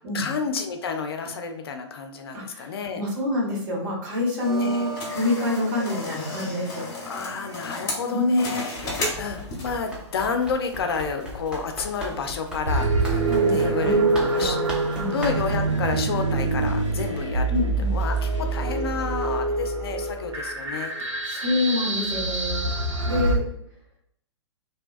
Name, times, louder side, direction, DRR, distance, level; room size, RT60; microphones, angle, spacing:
voice 1, 0.1-3.0 4.5-4.9 7.1-13.2 13.5-14.6 15.1-17.6 17.9-20.9, left 5 dB, 55° left, 6 dB, 0.4 m, -30 dB
voice 2, 2.3-6.8 8.1-8.4 13.3-14.7 14.9-15.3 17.5-17.9 21.2-22.7 23.0-23.4, left 2 dB, 40° right, -3 dB, 1.1 m, -27 dB
sound 1, 4.4-9.9, left 1 dB, 25° left, 0.9 m, -33 dB
Run, 8.8-15.7, equal, 5° right, 0.5 m, -37 dB
sound 2, 12.7-23.3, right 3 dB, 80° right, 0.7 m, -25 dB
2.7 x 2.2 x 2.4 m, 0.76 s
figure-of-eight pair, 115°, 15 cm